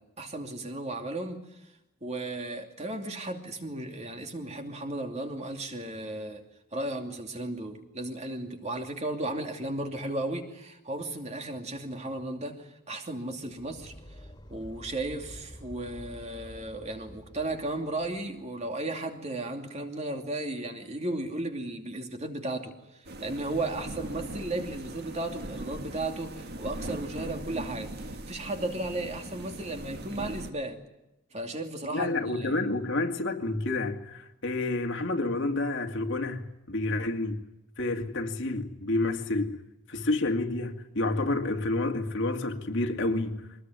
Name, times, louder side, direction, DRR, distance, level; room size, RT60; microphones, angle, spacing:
voice 1, 0.0-1.7 2.0-6.4 6.7-14.2 14.5-30.8 31.3-32.6, right 2 dB, 30° right, 2.7 m, -35 dB
sound 1, 13.4-18.6, equal, 15° left, 3.0 m, -49 dB
sound 2, 23.0-30.5, right 1 dB, 45° right, 1.7 m, -40 dB
voice 2, 31.9-37.4 37.8-39.6 39.9-43.5, left 2 dB, 55° left, 2.3 m, -29 dB
24.0 x 20.5 x 9.5 m
head